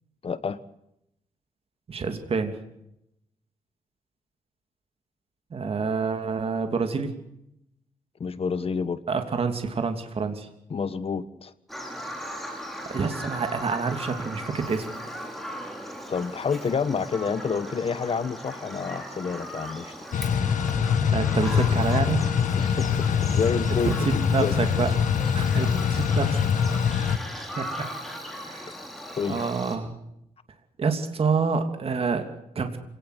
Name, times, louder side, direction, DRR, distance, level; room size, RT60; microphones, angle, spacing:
voice 1, 0.2-0.6 8.2-9.0 10.7-11.5 16.1-19.9 22.6-24.6 29.2-29.4, left 5 dB, 45° left, 13 dB, 1.5 m, -28 dB
voice 2, 1.9-2.6 5.5-7.2 9.1-10.5 12.9-14.9 21.1-22.2 23.8-25.0 25.3-26.5 27.6-27.9 28.4-28.7 29.3-29.9 30.8-32.8, right 5 dB, 45° right, 6 dB, 2.9 m, -27 dB
Bird vocalization bird call bird song, 11.7-29.8, equal, ahead, 5.7 m, -38 dB
sound 1, 20.1-27.2, left 7 dB, 65° left, 1.7 m, -24 dB
27.5 x 18.5 x 8.3 m, 0.81 s
wide cardioid pair, 130°, 14 cm